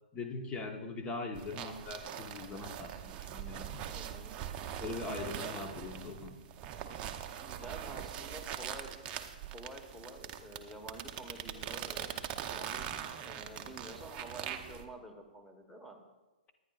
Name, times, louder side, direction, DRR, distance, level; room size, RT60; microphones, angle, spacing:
voice 1, 0.1-3.8 4.8-6.4, left 3 dB, 20° left, 5 dB, 1.1 m, -41 dB
sound 1, 1.3-14.8, right 9 dB, 25° right, 0.7 m, -42 dB
voice 2, 3.9-4.4 5.1-5.7 7.4-8.9 9.5-16.0, right 2 dB, ahead, 3 dB, 1.3 m, -49 dB
20.5 x 9.9 x 2.4 m, 1.1 s
figure-of-eight pair, 120°, 5 cm